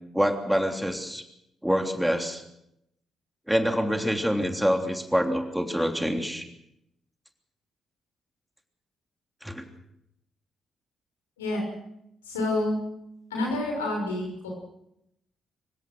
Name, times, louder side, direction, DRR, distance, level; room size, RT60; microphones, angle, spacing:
voice 1, 0.1-1.2 1.6-2.4 3.5-6.4 9.4-9.6, equal, 5° right, 5 dB, 3.3 m, -26 dB
voice 2, 12.2-12.8 13.3-14.5, left 2 dB, 85° left, -1 dB, 6.0 m, -28 dB
26.5 x 16.5 x 6.4 m, 0.81 s
figure-of-eight pair, 40°, 0 cm